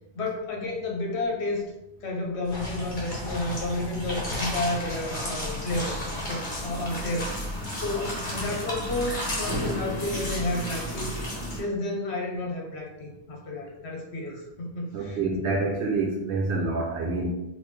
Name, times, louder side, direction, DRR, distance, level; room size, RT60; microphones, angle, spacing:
voice 1, 0.2-1.6 2.0-6.0 6.3-7.3 7.8-11.1 11.5-15.5, left 2 dB, 75° left, 0 dB, 1.0 m, -31 dB
sound 1, 2.4-11.6, equal, 45° left, 1.0 m, -32 dB
voice 2, 14.9-17.3, right 3 dB, 75° right, -1 dB, 0.8 m, -27 dB
3.3 x 2.5 x 3.1 m, 0.92 s
omnidirectional pair, 1.1 m